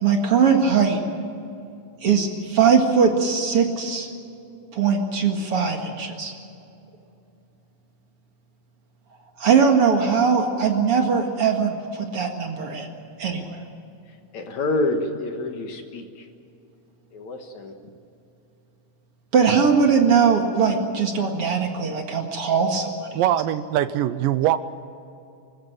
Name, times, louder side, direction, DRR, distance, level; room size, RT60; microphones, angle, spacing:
voice 1, 0.0-1.0 2.0-4.1 4.7-6.3 9.4-12.9 13.2-13.6 19.3-23.2, right 6 dB, 45° right, 3 dB, 2.4 m, -20 dB
voice 2, 14.3-16.0 17.1-17.7, left 2 dB, 60° left, 5 dB, 2.5 m, -27 dB
voice 3, 23.2-24.6, right 12 dB, 80° right, 14 dB, 2.3 m, -22 dB
25.0 x 15.0 x 9.1 m, 2.6 s
omnidirectional pair, 4.1 m